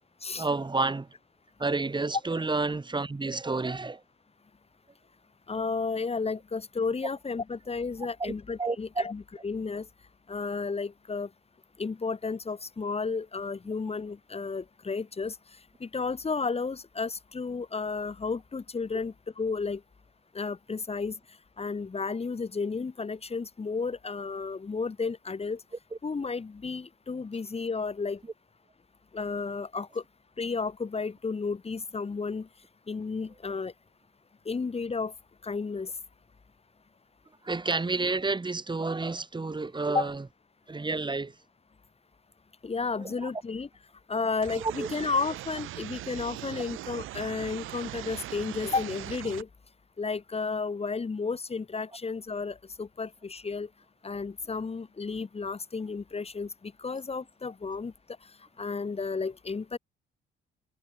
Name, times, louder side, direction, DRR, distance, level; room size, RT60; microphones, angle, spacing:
voice 1, 0.4-1.1 1.6-4.0 8.2-8.3 8.6-9.0 37.4-40.2 40.7-41.4 43.0-43.3 44.6-44.9, right 3 dB, 25° right, 6.8 m, -30 dB
voice 2, 5.5-9.9 10.3-11.3 11.8-15.4 15.8-19.8 20.3-21.2 21.6-25.6 26.0-28.2 29.1-30.0 30.4-32.5 32.9-33.7 34.5-35.1 35.4-35.9 39.9-40.1 42.6-43.7 44.1-49.5 50.0-53.7 54.0-56.5 56.8-57.9 58.6-59.8, left 4 dB, 30° left, 4.1 m, -32 dB
sound 1, 44.4-49.4, right 15 dB, 90° right, 4.8 m, -40 dB
cardioid pair, 90°, 20 cm